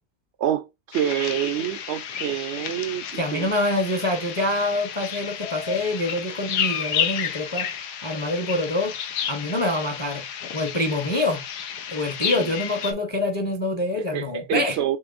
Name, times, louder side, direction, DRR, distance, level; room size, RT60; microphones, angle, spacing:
voice 1, 0.4-3.5 12.4-12.5 14.1-15.0, right 11 dB, 70° right, 0.6 m, -27 dB
sound 1, 0.9-12.9, left 8 dB, 90° left, 1.3 m, -31 dB
voice 2, 3.2-7.7 8.0-9.0 9.3-10.2 10.5-11.4 11.9-14.8, left 1 dB, 25° left, 0.7 m, -25 dB
6.9 x 3.0 x 2.5 m
omnidirectional pair, 1.6 m